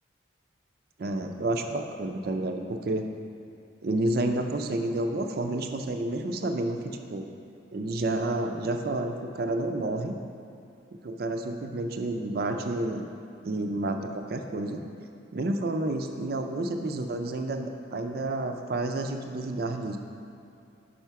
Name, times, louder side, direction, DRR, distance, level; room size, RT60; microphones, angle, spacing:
voice 1, 1.0-3.1 3.8-7.3 7.7-10.2 11.0-13.0 13.4-14.8 15.3-20.0, right 2 dB, 50° right, 5 dB, 0.4 m, -30 dB
5.6 x 4.9 x 4.6 m, 2.6 s
head